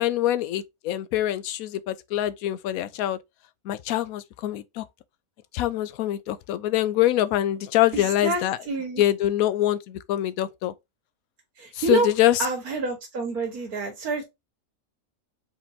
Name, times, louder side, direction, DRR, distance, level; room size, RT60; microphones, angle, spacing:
voice 1, 0.0-3.2 3.7-4.8 5.5-8.6 9.0-10.7 11.9-12.4, left 13 dB, 75° left, 1.0 m, -24 dB
voice 2, 7.9-8.4 8.7-9.0 11.6-12.1 12.4-14.2, right 3 dB, 90° right, 2.0 m, -27 dB
4.4 x 4.0 x 2.8 m
omnidirectional pair, 1.5 m